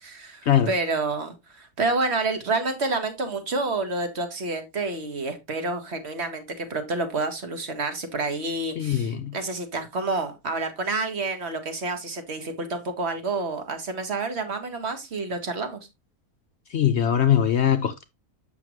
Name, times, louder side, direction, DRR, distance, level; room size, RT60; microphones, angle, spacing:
voice 1, 0.0-15.8, right 3 dB, 45° right, 1.6 m, -29 dB
voice 2, 8.8-9.3 16.7-18.0, left 9 dB, 65° left, 0.7 m, -21 dB
7.6 x 6.3 x 3.0 m
omnidirectional pair, 1.6 m